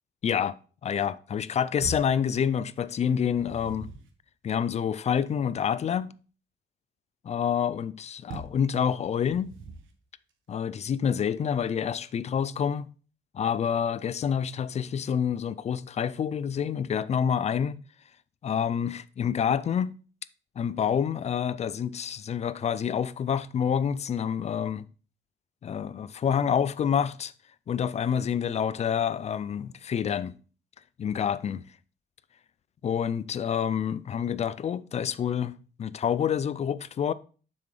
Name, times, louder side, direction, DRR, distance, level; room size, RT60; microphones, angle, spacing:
voice 1, 0.2-0.6 0.8-3.9 4.4-6.1 7.2-9.5 10.5-12.9 13.3-17.8 18.4-20.0 20.6-24.8 25.6-27.3 27.7-30.3 31.0-31.6 32.8-37.1, left 8 dB, 35° left, 0.3 m, -28 dB
sound 1, 1.8-2.2 3.1-4.2 8.3-8.7 9.3-10.0, right 4 dB, 75° right, 1.1 m, -40 dB
7.2 x 5.9 x 3.3 m
cardioid pair, 145°, 21 cm